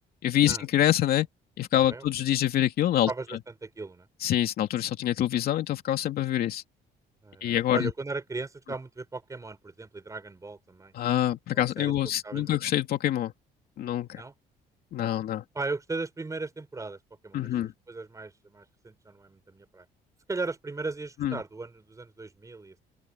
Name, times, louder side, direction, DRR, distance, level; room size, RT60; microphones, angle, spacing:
voice 1, 0.2-1.3 1.6-3.1 4.2-6.6 7.4-7.9 10.9-13.3 13.8-14.2 14.9-15.4 17.3-17.7 21.2-21.4, left 12 dB, 65° left, 2.8 m, -26 dB
voice 2, 3.1-4.1 7.2-10.9 11.5-11.9 12.2-12.6 14.1-14.3 15.5-17.0 17.2-17.5 17.9-19.9 20.3-22.8, right 3 dB, 20° right, 6.0 m, -37 dB
open air
cardioid pair, 110°, 17 cm